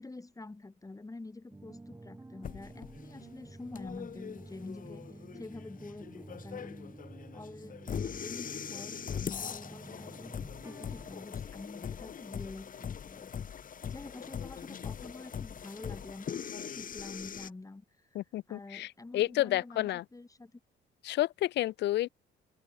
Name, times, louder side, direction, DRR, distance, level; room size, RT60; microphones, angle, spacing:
voice 1, 0.0-5.1 5.3-7.0 7.3-10.4 10.6-13.6 13.9-18.2 18.5-20.6, left 2 dB, 15° left, 3.7 m, -47 dB
sound 1, 1.5-11.3, right 2 dB, 15° right, 2.0 m, -50 dB
sound 2, 2.4-17.5, left 8 dB, 45° left, 1.4 m, -41 dB
voice 2, 18.2-18.9 19.1-20.0 21.0-22.1, left 15 dB, 65° left, 0.4 m, -30 dB
open air
cardioid pair, 90°, 19 cm